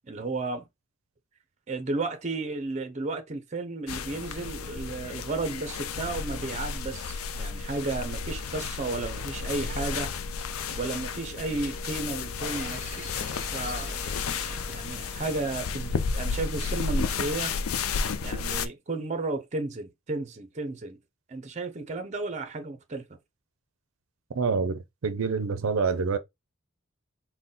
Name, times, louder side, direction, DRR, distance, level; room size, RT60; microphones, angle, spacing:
voice 1, 0.1-0.7 1.7-10.1 10.7-13.1 13.5-13.9 14.7-17.5 18.2-21.0 21.3-23.0, right 3 dB, 35° right, 0.5 m, -33 dB
sound 1, 3.9-18.7, left 5 dB, 90° left, 0.4 m, -32 dB
sound 2, 12.4-16.4, left 1 dB, 40° left, 1.2 m, -42 dB
voice 2, 24.3-26.2, right 5 dB, 80° right, 0.5 m, -27 dB
3.9 x 2.1 x 3.7 m
head